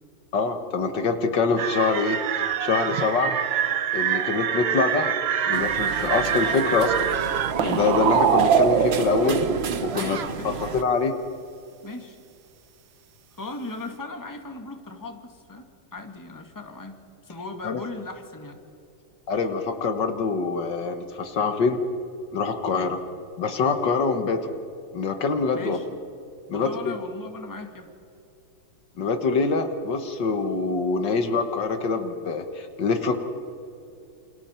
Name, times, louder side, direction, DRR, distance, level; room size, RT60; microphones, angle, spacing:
voice 1, 0.3-2.2 2.6-3.3 3.9-5.1 5.5-7.1 7.6-9.4 9.8-10.2 10.7-11.2 17.6-17.8 19.3-21.8 22.3-23.0 23.4-24.5 24.9-25.8 26.5-26.9 29.0-33.1, left 4 dB, 65° left, 7 dB, 1.9 m, -24 dB
sound 1, 1.6-9.9, right 8 dB, 75° right, 1.7 m, -24 dB
sound 2, 5.5-10.8, right 7 dB, 50° right, 0.7 m, -34 dB
voice 2, 9.9-10.6 11.8-12.2 13.3-17.0 17.2-18.6 22.7-22.9 25.5-25.9 26.5-27.9, left 3 dB, 10° left, 4 dB, 1.8 m, -38 dB
28.5 x 28.0 x 4.4 m, 2.6 s
omnidirectional pair, 2.1 m